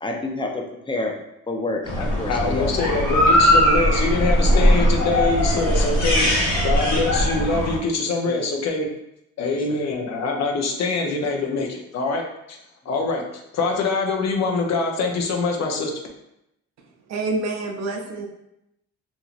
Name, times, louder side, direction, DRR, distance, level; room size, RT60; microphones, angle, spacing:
voice 1, 0.0-1.1 1.5-3.0 8.3-8.4 9.5-9.8, left 2 dB, 15° left, 2 dB, 0.5 m, -29 dB
sound 1, 1.8-7.8, equal, 90° left, 1.0 m, -19 dB
voice 2, 2.3-8.9 9.4-12.6 12.9-15.9, left 3 dB, 60° left, 1 dB, 0.6 m, -24 dB
voice 3, 17.1-18.3, right 3 dB, 60° right, 3 dB, 0.6 m, -27 dB
2.9 x 2.6 x 2.4 m, 0.84 s
cardioid pair, 90°, 30 cm